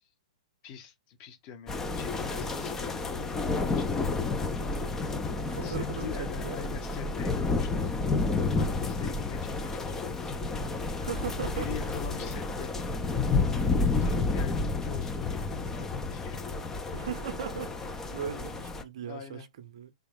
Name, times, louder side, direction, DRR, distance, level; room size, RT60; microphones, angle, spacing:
voice 1, 0.6-4.2 5.6-7.9 8.3-16.4 19.0-19.5, left 8 dB, 35° left, 1.0 m, -44 dB
sound 1, 1.7-18.8, left 3 dB, 10° left, 0.5 m, -30 dB
voice 2, 5.4-6.6 11.0-11.7 16.9-19.9, right 8 dB, 55° right, 0.6 m, -38 dB
3.5 x 2.9 x 3.5 m
figure-of-eight pair, 115°, 4 cm